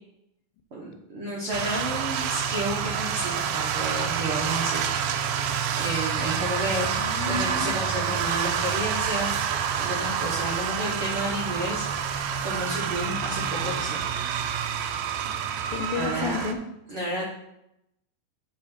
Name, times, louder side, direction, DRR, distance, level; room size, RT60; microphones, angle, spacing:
voice 1, 0.7-4.9 5.7-14.0 15.9-16.5 16.9-17.2, right 1 dB, 70° right, -4 dB, 1.2 m, -31 dB
sound 1, 1.5-16.5, right 8 dB, 90° right, 2.5 m, -28 dB
voice 2, 6.3-7.7 15.6-16.6, left 5 dB, 80° left, 7 dB, 2.3 m, -32 dB
7.5 x 5.7 x 4.3 m, 0.81 s
omnidirectional pair, 4.3 m